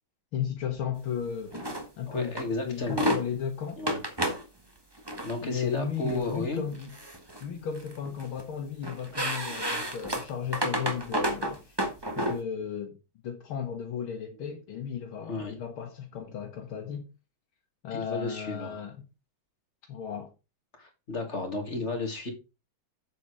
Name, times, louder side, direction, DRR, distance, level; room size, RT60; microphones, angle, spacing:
voice 1, 0.3-1.7 2.0-3.8 5.4-7.0 7.4-11.8 12.2-13.0 13.2-17.1 17.8-19.1 19.9-20.3, left 8 dB, 85° left, 2.2 m, -35 dB
sound 1, 1.5-1.8 2.4-2.5 2.8-3.2 3.9-4.4 5.0-5.3 6.1-6.3 6.7-7.4 7.7-8.4 8.8-12.4, equal, 10° right, 1.7 m, -30 dB
voice 2, 2.1-3.1 3.8-4.0 5.2-6.6 15.3-15.5 17.9-18.8 20.8-22.3, left 2 dB, 35° left, 2.4 m, -33 dB
8.1 x 7.0 x 4.8 m
omnidirectional pair, 2.2 m